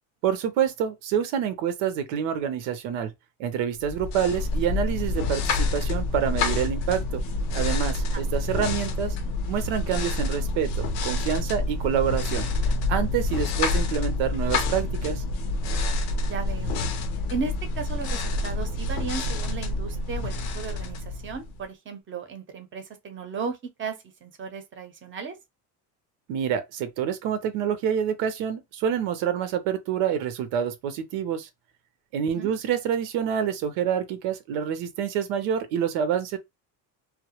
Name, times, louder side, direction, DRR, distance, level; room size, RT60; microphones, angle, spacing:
voice 1, 0.2-3.1 3.4-7.2 7.5-9.2 9.5-12.5 12.9-15.2 26.3-31.5 32.1-36.4, right 8 dB, 85° right, 0.6 m, -27 dB
sound 1, 3.8-21.6, left 2 dB, 90° left, 0.7 m, -27 dB
voice 2, 16.3-16.8 17.3-25.4 32.3-32.5, right 5 dB, 30° right, 0.6 m, -35 dB
2.1 x 2.0 x 2.8 m
cardioid pair, 105°, 43 cm